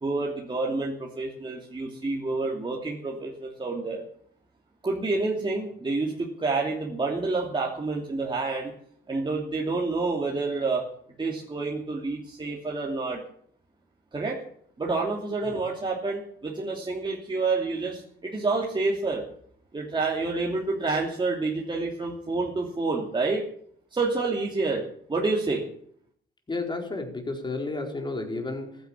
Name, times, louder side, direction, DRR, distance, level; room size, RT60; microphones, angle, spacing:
voice 1, 0.0-4.0 4.8-8.7 9.1-10.8 11.2-13.2 14.1-14.4 14.8-19.2 19.7-23.4 23.9-24.8 25.1-25.6, right 3 dB, 25° right, -2 dB, 3.0 m, -28 dB
voice 2, 26.5-28.8, left 3 dB, 25° left, 3 dB, 4.6 m, -32 dB
15.0 x 10.5 x 8.9 m, 0.64 s
cardioid pair, 90°, 20 cm